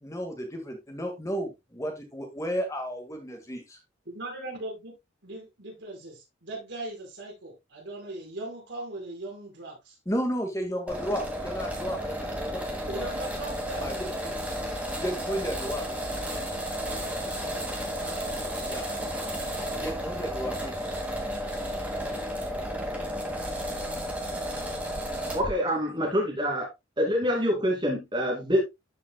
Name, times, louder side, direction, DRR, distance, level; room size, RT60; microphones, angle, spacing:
voice 1, 0.0-3.8 10.1-13.1 13.8-14.7 15.0-16.0 17.1-17.3 18.7-18.9 19.8-20.8, equal, 15° left, 1.7 m, -33 dB
voice 2, 4.0-4.9 5.2-10.0 12.9-13.8, right 2 dB, 60° right, 4.9 m, -39 dB
sound 1, 10.9-25.5, equal, 5° right, 2.0 m, -33 dB
voice 3, 25.3-26.7 27.0-28.6, equal, 25° right, 2.4 m, -26 dB
13.0 x 5.7 x 2.2 m
head